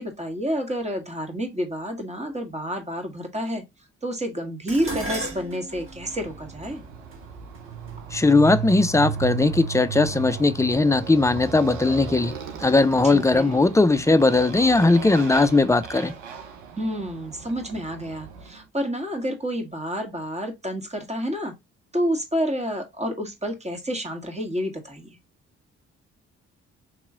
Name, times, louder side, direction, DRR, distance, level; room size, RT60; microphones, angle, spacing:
voice 1, 0.0-3.6 4.0-6.8 13.0-13.6 16.8-21.5 21.9-25.1, equal, 20° right, 1.7 m, -29 dB
Dishes pots and pans, 4.7-9.0 9.9-10.3 10.7-11.5 11.8-11.9, right 1 dB, 35° right, 1.8 m, -37 dB
Motorcycle, 5.9-18.6, right 7 dB, 90° right, 0.7 m, -36 dB
voice 2, 8.1-12.3 12.6-16.1, left 3 dB, 10° left, 0.5 m, -19 dB
4.6 x 3.0 x 3.7 m
hypercardioid pair, 45°, 34 cm